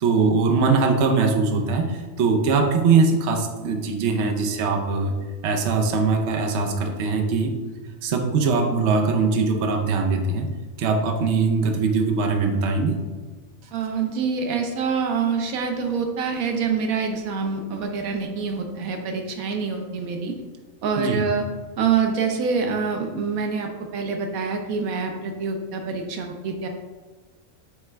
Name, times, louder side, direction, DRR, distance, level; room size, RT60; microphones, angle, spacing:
voice 1, 0.0-5.1 5.4-7.5 8.0-10.5 10.8-13.0 21.0-21.2, right 4 dB, 60° right, 2 dB, 1.0 m, -21 dB
voice 2, 13.7-20.3 20.8-21.4 21.8-26.7, right 5 dB, 80° right, 4 dB, 1.2 m, -26 dB
8.3 x 3.5 x 3.3 m, 1.3 s
omnidirectional pair, 1.5 m